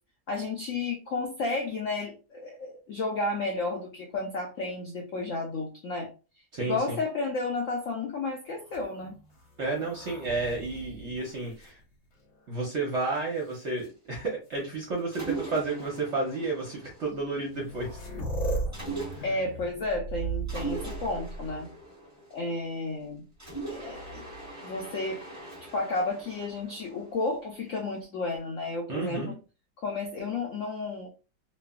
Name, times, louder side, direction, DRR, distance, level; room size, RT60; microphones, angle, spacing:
voice 1, 0.3-6.1 6.6-9.2 19.2-21.7 22.3-23.2 23.7-24.3 24.6-25.2 25.6-29.2 29.8-31.1, left 3 dB, 80° left, 1 dB, 0.7 m, -32 dB
voice 2, 6.5-7.0 9.6-11.8 12.5-18.0 19.2-19.3 28.9-29.3, right 3 dB, 55° right, -1 dB, 0.8 m, -31 dB
sound 1, 8.6-12.5 13.1-13.9 15.0-15.1 15.8-16.0 17.1-17.2 17.4-21.9 23.8-24.5, right 2 dB, 45° left, 1.1 m, -38 dB
Mechanisms, 15.1-17.5 18.7-19.6 20.5-22.8 23.4-27.6, right 3 dB, 25° right, 0.3 m, -40 dB
3.1 x 2.2 x 2.2 m, 0.32 s
omnidirectional pair, 2.0 m